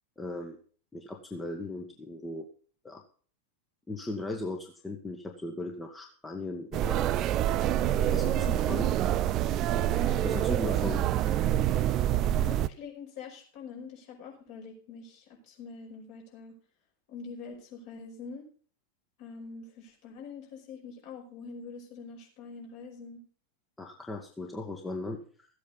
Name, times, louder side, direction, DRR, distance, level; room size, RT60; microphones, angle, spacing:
voice 1, 0.2-0.6 0.9-2.5 2.8-3.0 3.9-7.0 8.1-8.9 9.9-11.0 23.8-25.2, left 2 dB, 10° left, 2 dB, 1.5 m, -37 dB
sound 1, 6.7-12.7, right 11 dB, 35° right, 0.5 m, -26 dB
voice 2, 12.5-16.6 17.1-18.4 19.2-23.2, left 5 dB, 50° left, 0 dB, 5.6 m, -45 dB
14.5 x 8.4 x 5.5 m, 0.44 s
figure-of-eight pair, 90°, 0 cm